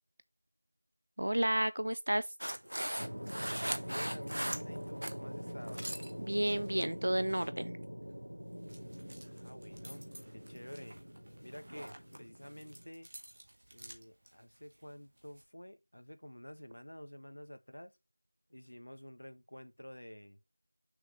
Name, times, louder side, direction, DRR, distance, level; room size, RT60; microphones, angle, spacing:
voice 1, 1.2-2.3 6.2-7.7, right 1 dB, 40° right, 0.4 m, -31 dB
sound 1, 2.4-5.2 5.5-6.1 6.5-6.7 7.3-7.5, equal, 55° right, 0.8 m, -38 dB
sound 2, 3.0-12.9, equal, 80° right, 1.3 m, -44 dB
voice 2, 3.6-5.9 9.2-10.1 10.3-11.0 11.4-13.1 13.7-18.0 18.5-20.4, equal, 60° left, 1.3 m, -50 dB
sound 3, 8.0-15.5, right 1 dB, 20° right, 1.0 m, -56 dB
6.5 x 5.9 x 3.2 m
figure-of-eight pair, 175°, 0 cm